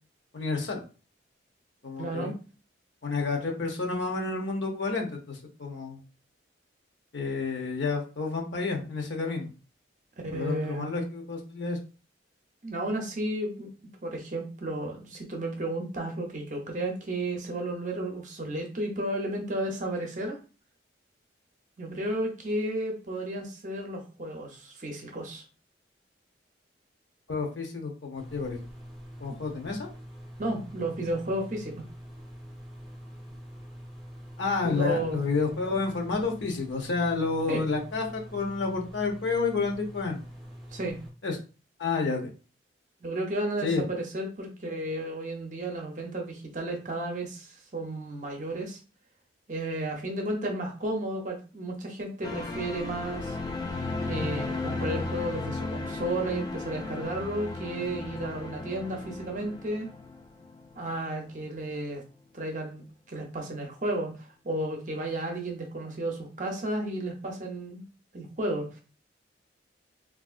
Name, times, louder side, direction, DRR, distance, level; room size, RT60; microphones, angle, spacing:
voice 1, 0.3-0.8 1.8-2.3 3.0-6.0 7.1-9.5 10.3-11.8 27.3-28.6 29.2-29.9 34.4-40.2 41.2-41.4 41.8-42.3 43.6-43.8, left 4 dB, 75° left, 2 dB, 0.7 m, -30 dB
voice 2, 2.0-2.3 10.2-10.9 12.6-13.7 14.0-20.4 21.8-25.4 29.3-29.4 30.4-31.7 34.6-35.2 37.5-37.6 40.7-41.0 43.0-48.8 49.5-53.4 54.0-59.9 60.8-62.0 62.3-67.8 68.1-68.8, right 1 dB, 40° right, 2 dB, 0.6 m, -33 dB
sound 1, 28.2-41.1, equal, ahead, 0.7 m, -45 dB
sound 2, 52.2-61.4 61.7-61.8, left 3 dB, 20° left, 0.3 m, -35 dB
3.4 x 2.5 x 2.4 m, 0.35 s
head